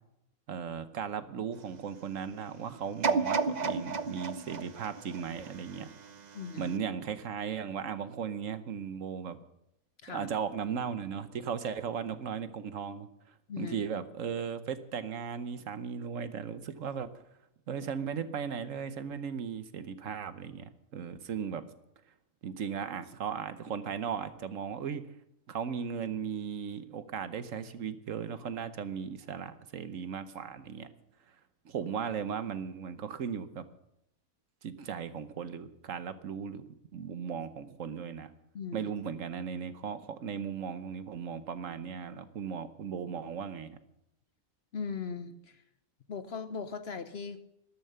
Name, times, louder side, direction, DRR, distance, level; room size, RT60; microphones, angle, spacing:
voice 1, 0.5-5.9 6.6-9.4 10.1-13.1 13.6-17.2 17.7-21.7 22.4-25.0 25.5-30.9 31.6-33.7 34.6-36.6 36.9-38.3 38.7-43.8, right 7 dB, 65° right, 12 dB, 1.2 m, -37 dB
sound 1, 3.0-6.1 6.6-6.7, right 4 dB, 40° right, 0.6 m, -32 dB
voice 2, 6.3-6.7 10.0-10.3 13.5-13.8 38.5-38.9 44.7-45.6 46.1-47.4, left 5 dB, 50° left, 11 dB, 1.0 m, -39 dB
13.0 x 12.5 x 6.8 m, 0.80 s
omnidirectional pair, 1.5 m